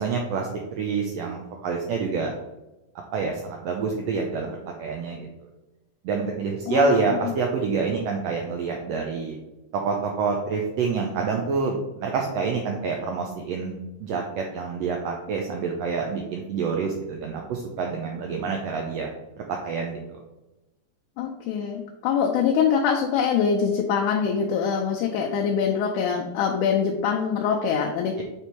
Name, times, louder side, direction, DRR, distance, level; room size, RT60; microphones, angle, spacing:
voice 1, 0.0-2.3 3.1-5.3 6.0-9.4 9.7-13.7 14.0-19.1 19.4-20.2, right 4 dB, 75° right, 1 dB, 1.6 m, -27 dB
voice 2, 6.7-7.3 21.2-28.2, left 7 dB, 80° left, 0 dB, 2.1 m, -24 dB
7.0 x 3.4 x 4.5 m, 1.0 s
omnidirectional pair, 3.6 m